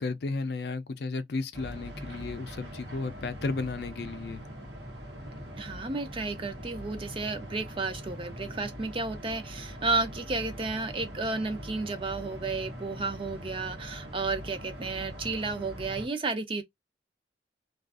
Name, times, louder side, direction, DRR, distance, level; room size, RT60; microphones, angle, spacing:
voice 1, 0.0-4.4, left 3 dB, 65° left, 0.5 m, -33 dB
sound 1, 1.5-16.1, equal, 80° right, 0.9 m, -42 dB
voice 2, 5.6-16.6, right 3 dB, 30° right, 0.5 m, -32 dB
2.4 x 2.3 x 2.3 m
head